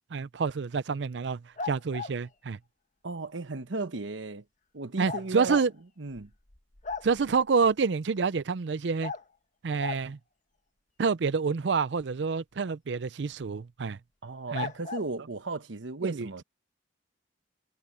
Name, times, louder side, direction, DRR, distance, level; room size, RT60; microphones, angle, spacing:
voice 1, 0.1-1.4 1.6-2.6 5.0-5.7 7.0-9.1 9.6-10.2 11.0-14.0 14.5-14.7 16.0-16.4, right 5 dB, 65° right, 0.5 m, -28 dB
sound 1, 1.6-2.2 5.1-5.7 6.2-6.3 6.5-7.4 9.0-9.2 9.8-10.1 13.4-13.5 14.5-15.1, left 5 dB, 40° left, 1.4 m, -36 dB
voice 2, 3.0-4.4 4.7-5.6 6.0-6.3 14.2-16.4, right 3 dB, 85° right, 1.1 m, -35 dB
head